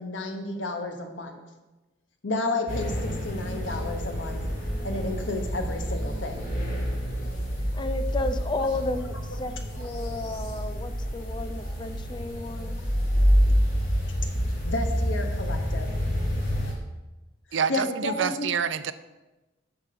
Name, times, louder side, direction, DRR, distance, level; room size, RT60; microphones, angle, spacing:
voice 1, 0.0-1.4 2.2-4.4 4.8-6.5 14.6-15.9 17.7-18.5, left 2 dB, 85° left, 5 dB, 1.2 m, -31 dB
sound 1, 2.7-16.7, equal, 50° left, 2.4 m, -28 dB
voice 2, 7.7-12.8, left 2 dB, 25° left, 9 dB, 0.5 m, -33 dB
voice 3, 17.5-18.9, right 7 dB, 80° right, 13 dB, 0.5 m, -27 dB
7.0 x 5.9 x 6.7 m, 1.1 s
head